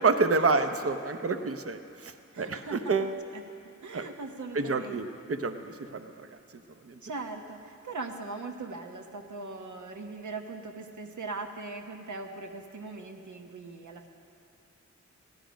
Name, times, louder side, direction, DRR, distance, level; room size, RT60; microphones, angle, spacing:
voice 1, 0.0-3.1 3.9-4.0 4.5-5.6 5.9-6.3 6.9-7.0, right 4 dB, 50° right, 8 dB, 0.8 m, -28 dB
voice 2, 2.3-3.0 3.3-5.0 7.0-14.1, right 3 dB, 75° right, 3 dB, 1.1 m, -40 dB
16.5 x 12.5 x 5.1 m, 2.7 s
wide cardioid pair, 110°, 30 cm